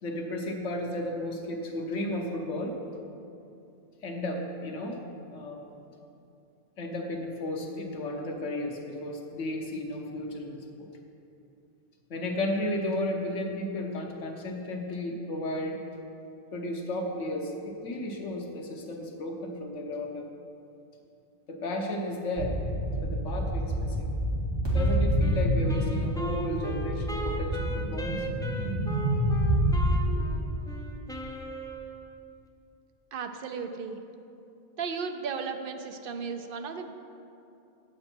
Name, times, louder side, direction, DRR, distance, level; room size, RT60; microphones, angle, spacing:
voice 1, 0.0-2.8 4.0-5.0 5.3-5.6 6.8-10.9 12.1-15.8 16.5-20.3 21.5-22.6 23.0-24.1 24.7-28.3 30.3-30.5, left 1 dB, 80° left, 2 dB, 1.3 m, -33 dB
sound 1, 22.4-29.8, equal, 20° right, 2.0 m, -28 dB
Wind instrument woodwind instrument, 24.7-32.2, right 1 dB, 5° left, 0.4 m, -39 dB
voice 2, 33.1-34.0 34.8-36.9, right 5 dB, 55° right, 6 dB, 0.7 m, -35 dB
8.8 x 7.9 x 4.4 m, 2.7 s
omnidirectional pair, 1.2 m